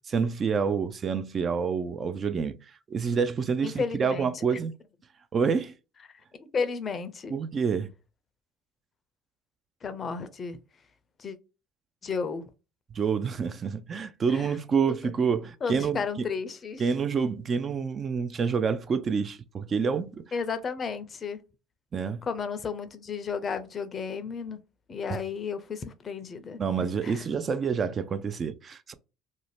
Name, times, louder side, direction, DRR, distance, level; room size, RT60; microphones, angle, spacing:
voice 1, 0.1-2.6 2.9-4.7 5.3-5.7 7.3-7.9 12.9-16.0 16.8-20.2 21.9-22.2 26.6-28.9, right 6 dB, 40° right, 0.4 m, -27 dB
voice 2, 3.6-4.4 6.4-7.3 9.8-10.6 11.2-11.4 12.0-12.4 14.3-14.5 15.6-16.8 20.3-21.4 22.2-24.6 24.9-26.6 27.0-27.2, left 5 dB, 40° left, 0.5 m, -33 dB
2.6 x 2.1 x 3.2 m
supercardioid pair, 80°, 0 cm